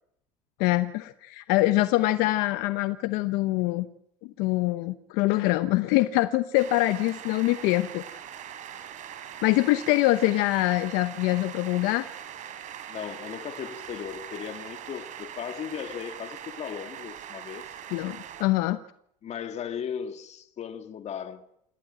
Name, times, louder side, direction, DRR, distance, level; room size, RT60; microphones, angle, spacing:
voice 1, 0.6-3.9 4.4-8.2 9.4-12.1 17.9-18.8, left 17 dB, 70° left, 1.0 m, -24 dB
sound 1, 6.5-18.4, right 9 dB, 50° right, 3.9 m, -42 dB
voice 2, 12.9-17.7 19.2-21.4, left 8 dB, 45° left, 2.2 m, -37 dB
27.0 x 17.0 x 7.7 m
supercardioid pair, 105°, 16 cm